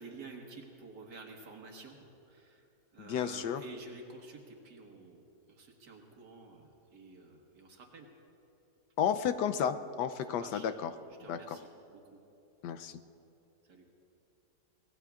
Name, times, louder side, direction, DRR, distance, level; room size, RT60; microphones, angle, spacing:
voice 1, 0.0-2.0 2.3-2.6 2.9-5.2 5.5-8.1 10.3-10.7 11.2-12.2 13.7-13.9, right 3 dB, 80° right, 1 dB, 2.2 m, -50 dB
voice 2, 3.0-3.6 9.0-10.9 11.3-11.6 12.6-13.0, left 8 dB, 85° left, 9 dB, 1.2 m, -32 dB
24.5 x 19.0 x 2.4 m, 2.9 s
omnidirectional pair, 1.8 m